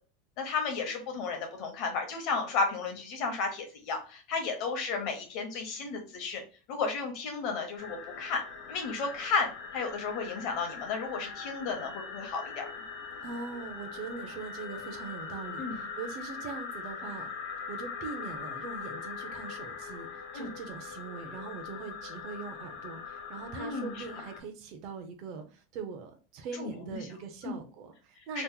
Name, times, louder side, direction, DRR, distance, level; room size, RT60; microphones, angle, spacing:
voice 1, 0.4-6.4 6.7-8.4 8.7-12.7 15.6-15.8 20.3-20.5 23.5-24.0 26.5-27.0 27.4-27.6 28.3-28.4, left 4 dB, 40° left, 0.8 m, -33 dB
sound 1, 7.8-24.4, left 5 dB, 70° left, 1.0 m, -41 dB
voice 2, 13.2-17.3 17.7-28.4, right 5 dB, 40° right, 0.6 m, -42 dB
2.9 x 2.0 x 3.6 m
supercardioid pair, 170°, 0 cm